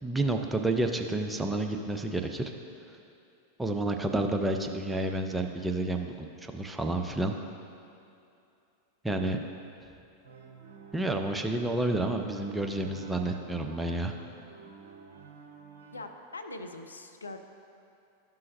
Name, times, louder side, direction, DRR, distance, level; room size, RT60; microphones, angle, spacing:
voice 1, 0.0-2.5 3.6-7.4 9.0-9.4 10.9-14.1, right 2 dB, 10° right, 4 dB, 0.5 m, -30 dB
sound 1, 10.2-16.0, right 4 dB, 65° right, 0.8 m, -51 dB
voice 2, 15.9-17.4, left 2 dB, 75° left, 6 dB, 0.4 m, -42 dB
12.0 x 5.6 x 2.6 m, 2.7 s
figure-of-eight pair, 90°, 0 cm